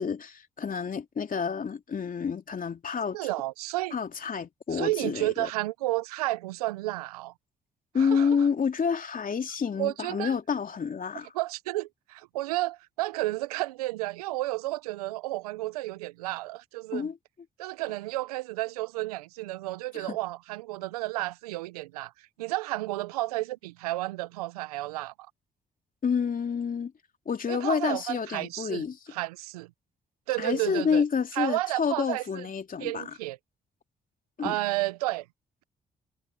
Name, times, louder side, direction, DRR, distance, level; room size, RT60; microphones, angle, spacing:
voice 1, 0.0-3.2 3.9-5.5 7.9-11.3 16.9-17.2 19.9-20.2 26.0-26.9 27.3-29.0 30.4-33.1 34.4-34.6, left 6 dB, 45° left, 3.0 m, -29 dB
voice 2, 3.1-4.0 4.7-7.3 8.0-8.3 9.8-10.3 11.3-17.1 17.6-22.1 22.4-25.1 27.5-28.8 29.1-29.7 30.3-31.0 31.3-32.5 32.8-33.4 34.4-35.3, right 18 dB, 85° right, 1.0 m, -31 dB
hypercardioid pair, 40°, 19 cm